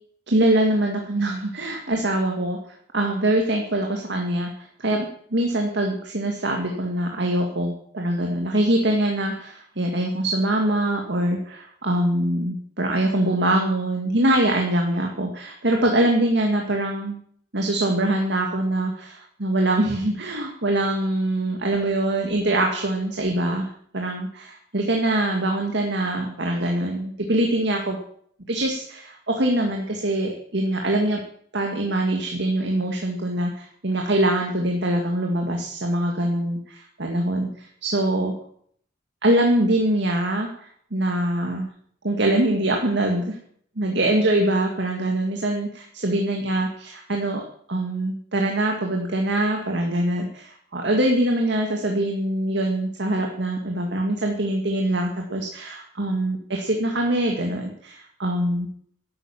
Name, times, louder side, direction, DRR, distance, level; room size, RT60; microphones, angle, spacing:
voice 1, 0.3-2.6 2.9-5.1 5.3-17.2 17.5-23.7 23.9-28.0 28.5-31.2 31.5-38.3 39.2-41.7 42.0-43.4 43.8-58.7, right 1 dB, 65° right, 2 dB, 2.1 m, -23 dB
12.0 x 9.1 x 7.2 m, 0.62 s
head